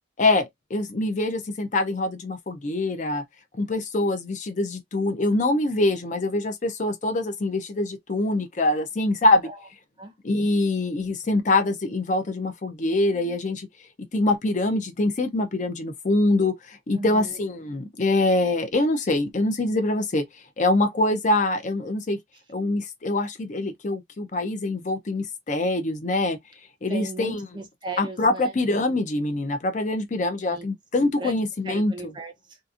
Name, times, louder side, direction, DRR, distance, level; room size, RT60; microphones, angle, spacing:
voice 1, 0.2-3.2 3.6-9.5 10.2-13.7 14.1-20.2 20.6-22.2 22.5-26.4 26.8-27.4 28.0-31.9, left 2 dB, 40° left, 0.5 m, -24 dB
voice 2, 16.9-17.4 26.9-28.5 30.5-30.7 31.0-31.4 31.6-32.6, right 2 dB, 25° right, 0.6 m, -37 dB
2.8 x 2.5 x 2.4 m
head